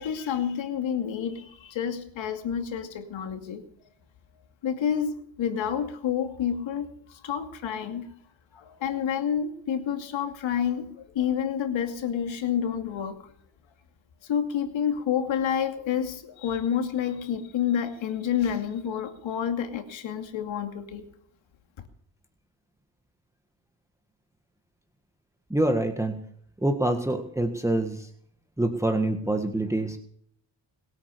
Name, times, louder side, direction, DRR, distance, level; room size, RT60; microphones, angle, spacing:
voice 1, 0.0-3.6 4.6-8.1 8.5-13.2 14.3-21.0, left 8 dB, 90° left, 7 dB, 2.6 m, -29 dB
voice 2, 25.5-26.2 26.6-28.1 28.6-30.0, right 1 dB, 5° right, 5 dB, 1.6 m, -26 dB
21.5 x 9.1 x 6.8 m, 0.64 s
cardioid pair, 95°, 45 cm